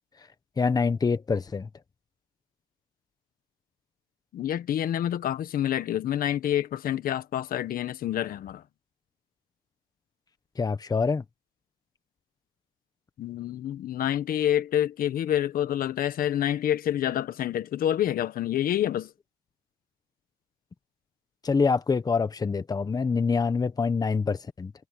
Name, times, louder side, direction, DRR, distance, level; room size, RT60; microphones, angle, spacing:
voice 1, 0.6-1.7 10.6-11.2 21.4-24.7, left 5 dB, 20° left, 1.2 m, -25 dB
voice 2, 4.3-8.6 13.2-19.1, left 11 dB, 60° left, 1.3 m, -27 dB
cardioid pair, 110°, 17 cm